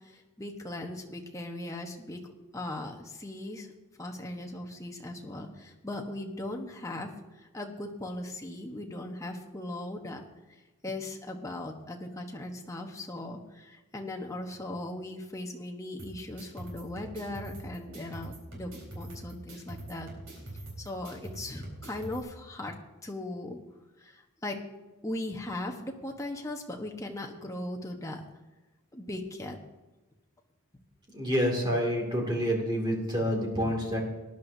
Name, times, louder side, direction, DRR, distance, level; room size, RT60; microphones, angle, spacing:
voice 1, 0.4-3.7 4.0-7.1 7.4-10.2 10.8-20.1 20.8-22.7 23.0-23.6 24.0-24.6 25.0-28.2 28.9-29.6, left 1 dB, 15° left, 1 dB, 1.1 m, -38 dB
sound 1, 16.0-22.2, right 1 dB, 65° right, 4.3 m, -44 dB
voice 2, 31.1-34.0, equal, 20° right, 0 dB, 2.4 m, -28 dB
19.0 x 11.0 x 2.7 m, 1.1 s
head